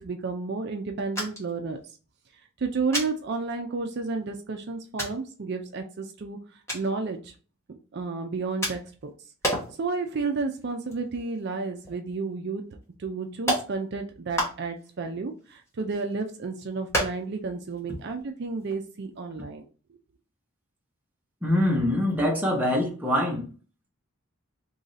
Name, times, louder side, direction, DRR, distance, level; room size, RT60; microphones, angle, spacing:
voice 1, 0.0-1.8 2.6-6.4 6.7-7.3 7.9-9.1 9.8-12.6 13.0-19.7, right 4 dB, 50° right, 0.4 m, -31 dB
sound 1, 1.2-1.6 1.9-2.0 2.9-3.1 4.0-4.1 5.0-5.2 6.7-6.9 8.6-9.0 9.4-9.8 10.2-10.3 10.7-11.6 11.9-12.0 12.8-12.9 13.5-13.7 14.3-14.9 15.4-16.2 16.9-17.4 17.7-17.8 18.1-18.2 18.6-18.8, equal, 15° left, 1.1 m, -30 dB
voice 2, 21.4-23.5, left 1 dB, 10° right, 0.8 m, -24 dB
3.1 x 2.6 x 3.8 m
head